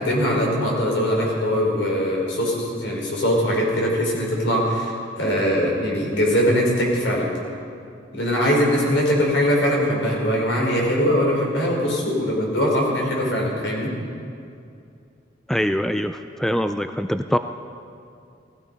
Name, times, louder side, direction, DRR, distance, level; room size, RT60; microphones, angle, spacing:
voice 1, 0.0-7.3 8.1-13.9, equal, 75° left, -2 dB, 4.3 m, -21 dB
voice 2, 15.5-17.4, equal, ahead, 8 dB, 0.3 m, -23 dB
16.0 x 15.5 x 5.3 m, 2.4 s
head